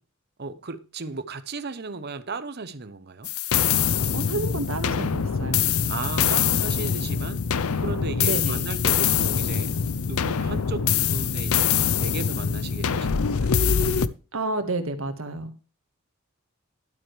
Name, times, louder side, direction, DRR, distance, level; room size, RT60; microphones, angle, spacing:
voice 1, 0.4-3.3 5.9-7.5 7.8-9.7 10.1-11.6 11.9-13.9, right 3 dB, 50° right, 0.8 m, -35 dB
sound 1, 3.2-14.1, left 7 dB, 85° left, 0.6 m, -24 dB
voice 2, 3.8-5.7 8.2-8.7 14.3-15.6, right 2 dB, 70° right, 1.6 m, -30 dB
11.5 x 9.1 x 3.3 m
head